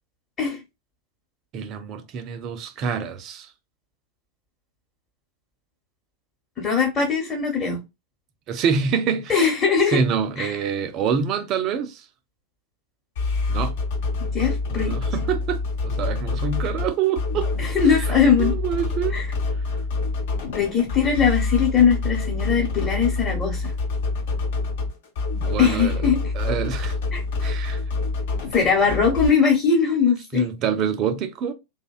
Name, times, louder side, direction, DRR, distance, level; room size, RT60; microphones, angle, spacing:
voice 1, 1.5-3.5 8.5-9.5 9.9-12.1 13.5-13.8 14.7-17.5 17.9-18.1 18.4-19.2 25.4-26.1 26.3-27.0 27.4-27.8 30.3-31.5, right 7 dB, 35° right, 0.4 m, -26 dB
voice 2, 6.6-7.8 9.3-10.0 10.4-10.5 14.3-14.9 17.6-18.5 19.1-19.3 20.5-23.7 25.6-26.2 27.1-27.2 28.5-30.4, left 6 dB, 20° left, 0.9 m, -20 dB
sound 1, 13.1-29.3, left 3 dB, 55° left, 0.8 m, -26 dB
2.6 x 2.1 x 2.2 m
figure-of-eight pair, 90°, 0 cm